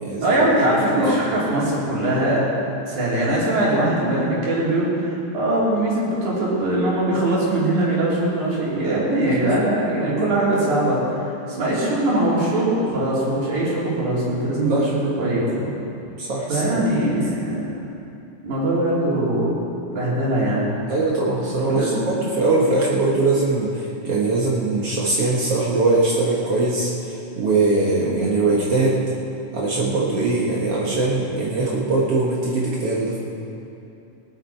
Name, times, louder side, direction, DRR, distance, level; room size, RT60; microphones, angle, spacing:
voice 1, 0.2-2.4 2.9-15.7 16.5-17.7 18.4-19.6 19.9-20.7 21.6-22.1, right 1 dB, 80° right, -7 dB, 4.6 m, -21 dB
voice 2, 16.2-16.8 20.9-29.0 29.5-33.2, right 2 dB, 55° right, -5 dB, 2.3 m, -21 dB
18.5 x 11.5 x 4.6 m, 2.7 s
omnidirectional pair, 3.4 m